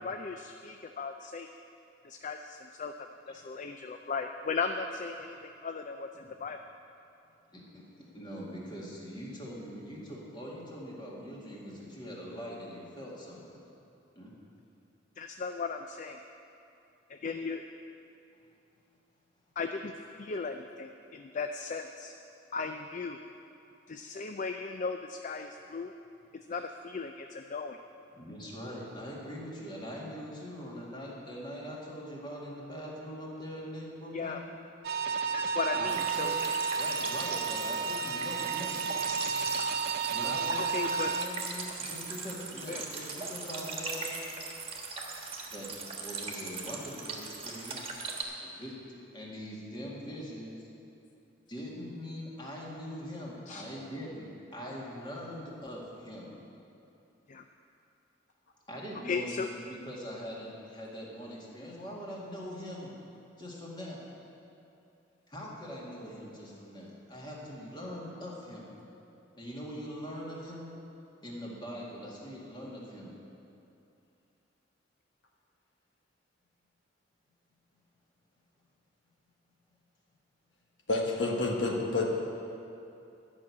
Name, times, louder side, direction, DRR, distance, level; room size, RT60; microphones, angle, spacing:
voice 1, 0.0-1.5 2.0-6.6 15.2-16.2 17.1-17.6 19.6-19.9 20.2-22.1 22.5-23.2 23.9-25.9 26.5-27.8 34.1-34.4 35.3-36.3 40.6-41.1 42.7-42.8 53.5-53.7 57.3-57.4 59.0-59.5, left 4 dB, 45° left, 6 dB, 0.4 m, -36 dB
voice 2, 7.5-13.6 14.1-14.3 28.1-34.4 35.7-36.4 36.7-38.9 40.1-44.1 45.4-45.7 46.0-48.2 48.4-48.7 49.1-50.7 51.5-56.4 58.7-59.4 59.7-62.9 63.4-64.0 65.3-68.7 69.4-70.7 71.2-73.1, equal, 25° left, -4 dB, 2.1 m, -42 dB
sound 1, 34.8-41.3, right 6 dB, 60° right, 0.5 m, -32 dB
sound 2, 35.9-48.2, right 4 dB, 35° right, 1.4 m, -39 dB
voice 3, 80.9-82.1, left 2 dB, 80° left, 0 dB, 1.5 m, -29 dB
11.5 x 6.2 x 8.5 m, 2.7 s
head